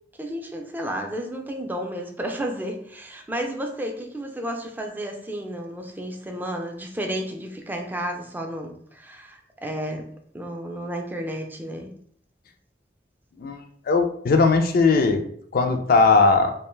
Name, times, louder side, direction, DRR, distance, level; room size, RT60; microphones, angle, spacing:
voice 1, 0.2-10.1 10.3-11.9, right 1 dB, 10° right, 2 dB, 0.4 m, -32 dB
voice 2, 13.4-15.2 15.5-16.5, left 4 dB, 55° left, 6 dB, 0.4 m, -19 dB
2.4 x 2.2 x 3.1 m, 0.62 s
head